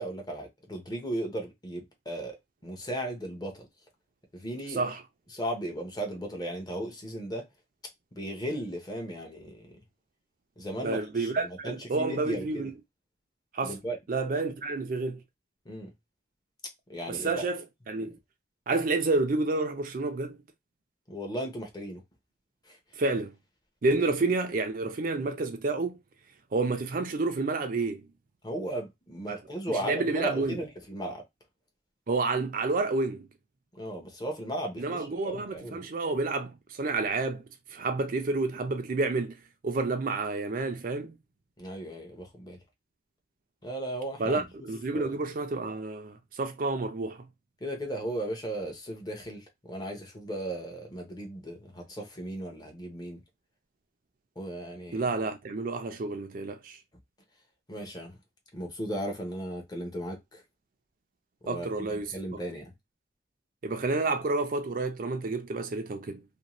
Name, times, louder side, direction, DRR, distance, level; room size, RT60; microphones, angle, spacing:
voice 1, 0.0-2.4 2.6-3.5 4.3-4.8 5.3-7.4 8.2-9.7 10.6-12.7 13.6-14.0 15.7-15.9 16.9-17.4 21.1-22.0 28.4-31.2 33.8-35.8 41.6-42.6 43.6-44.4 44.9-45.1 47.6-53.2 54.4-55.0 57.7-58.2 58.5-60.4 61.4-62.7, right 1 dB, 25° left, 0.7 m, -36 dB
voice 2, 4.7-5.0 10.8-12.7 13.5-13.8 14.1-15.2 17.1-18.2 18.7-20.4 23.0-23.3 23.8-26.0 26.5-28.1 29.3-29.4 29.7-30.6 32.1-33.3 34.8-37.4 37.7-41.2 44.2-47.3 54.9-56.8 61.5-62.4 63.6-66.2, right 3 dB, 50° right, 0.4 m, -30 dB
2.6 x 2.1 x 2.9 m
head